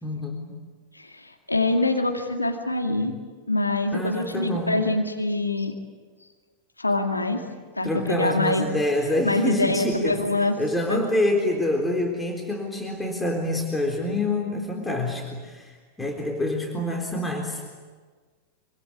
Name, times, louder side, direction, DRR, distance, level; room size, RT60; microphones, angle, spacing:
voice 1, 0.0-0.5 3.9-4.8 7.8-10.2 10.6-15.7 16.0-17.6, left 1 dB, 10° left, 2 dB, 3.8 m, -26 dB
voice 2, 0.9-3.1 3.5-5.7 6.8-7.4 7.8-8.6 9.2-10.5 10.9-11.0, left 2 dB, 85° left, 3 dB, 2.2 m, -24 dB
26.0 x 26.0 x 8.6 m, 1.5 s
figure-of-eight pair, 90°, 0 cm